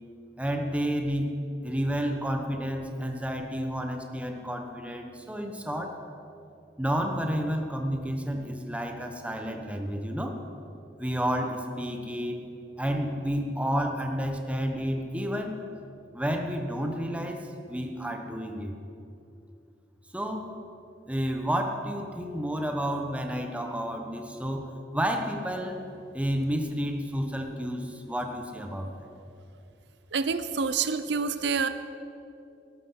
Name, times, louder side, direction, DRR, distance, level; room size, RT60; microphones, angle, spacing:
voice 1, 0.4-1.4 1.6-6.0 6.8-10.4 11.0-12.4 12.8-15.6 16.1-18.7 20.1-20.5 21.1-25.8 26.1-29.1, equal, 10° right, 4 dB, 1.3 m, -30 dB
voice 2, 30.1-31.7, right 5 dB, 75° right, 11 dB, 0.6 m, -27 dB
18.0 x 13.5 x 5.8 m, 2.7 s
head